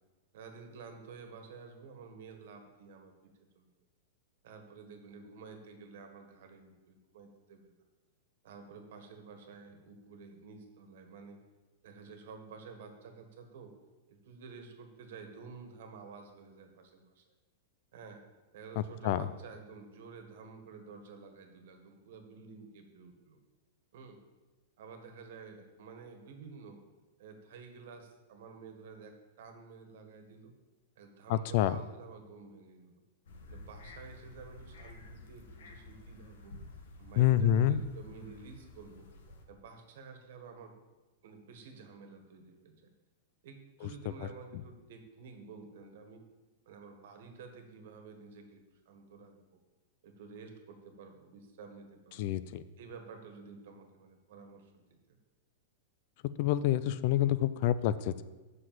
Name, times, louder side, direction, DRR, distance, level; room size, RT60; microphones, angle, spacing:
voice 1, 0.3-3.1 3.5-3.7 4.4-7.7 8.4-11.4 11.8-13.7 14.1-17.2 17.9-18.2 18.5-23.4 23.9-24.2 24.8-26.8 27.2-30.5 31.0-33.0 33.5-36.6 37.0-39.1 39.5-40.7 41.2-42.9 43.4-46.3 46.6-49.6 50.0-52.3 52.8-55.2, right 5 dB, 65° right, 5 dB, 1.6 m, -51 dB
voice 2, 31.3-31.8 37.2-37.8 43.8-43.9 52.2-52.6 56.4-58.2, left 11 dB, 45° left, 14 dB, 0.4 m, -27 dB
sound 1, 33.2-39.4, left 2 dB, 80° left, 1.6 m, -51 dB
7.5 x 6.1 x 7.7 m, 1.2 s
supercardioid pair, 160°, 0 cm